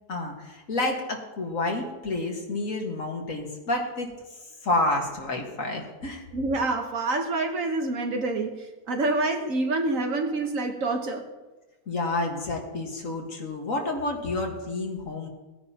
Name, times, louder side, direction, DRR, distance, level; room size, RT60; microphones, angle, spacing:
voice 1, 0.1-6.2 11.9-15.3, left 2 dB, 65° left, 1 dB, 2.1 m, -29 dB
voice 2, 6.3-11.2, right 2 dB, 65° right, 4 dB, 1.6 m, -27 dB
18.5 x 9.7 x 2.9 m, 1.1 s
omnidirectional pair, 1.5 m